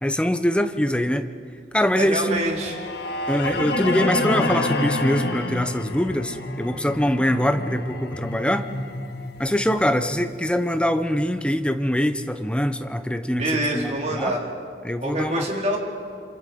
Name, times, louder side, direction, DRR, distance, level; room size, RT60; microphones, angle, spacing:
voice 1, 0.0-1.3 1.7-2.4 3.3-8.7 9.4-14.3 14.8-15.5, equal, 5° left, 8 dB, 1.0 m, -23 dB
voice 2, 1.9-2.8 13.4-14.5 15.0-15.8, right 1 dB, 40° right, -1 dB, 4.2 m, -25 dB
sound 1, 2.5-10.6, left 2 dB, 65° left, 2.0 m, -28 dB
28.5 x 27.0 x 5.4 m, 2.2 s
head